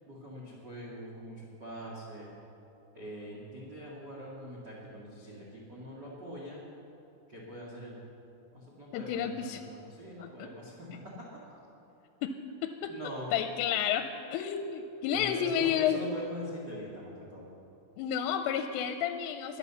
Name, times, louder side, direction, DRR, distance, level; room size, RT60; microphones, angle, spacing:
voice 1, 0.1-2.3 2.9-6.6 7.3-8.0 8.5-10.9 11.2-11.3 12.9-13.3 15.1-17.5, equal, 85° right, -4 dB, 0.9 m, -43 dB
voice 2, 8.9-9.6 10.2-10.5 12.2-12.3 12.6-12.9 13.3-16.0 18.0-19.6, left 9 dB, 85° left, 8 dB, 3.0 m, -31 dB
21.0 x 8.1 x 7.0 m, 2.9 s
omnidirectional pair, 5.9 m